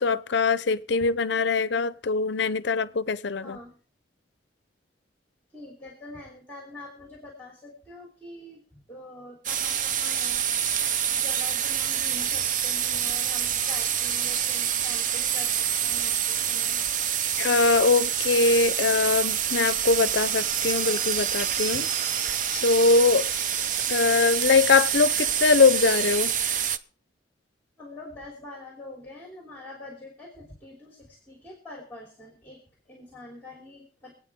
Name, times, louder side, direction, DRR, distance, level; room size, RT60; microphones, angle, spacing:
voice 1, 0.0-3.6 17.4-21.9 22.5-23.3 23.9-26.3, left 4 dB, 70° left, 0.5 m, -22 dB
voice 2, 3.4-3.7 5.5-10.4 11.1-16.8 21.7-21.8 27.8-32.6 32.9-34.1, left 2 dB, 10° left, 3.2 m, -44 dB
sound 1, 9.4-26.8, right 9 dB, 45° right, 0.5 m, -27 dB
26.0 x 8.9 x 3.6 m
head